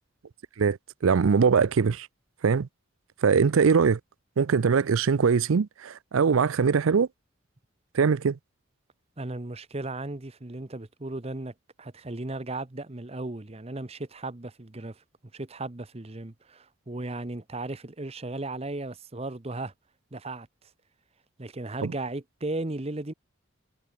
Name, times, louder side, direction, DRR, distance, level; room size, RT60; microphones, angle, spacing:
voice 1, 1.0-2.1 2.4-2.7 3.2-4.0 4.4-7.1 7.9-8.4 21.8-21.9, right 5 dB, 85° right, 0.5 m, -22 dB
voice 2, 9.2-15.0 15.3-19.7 20.1-20.5 21.4-23.1, right 2 dB, 30° right, 0.9 m, -36 dB
head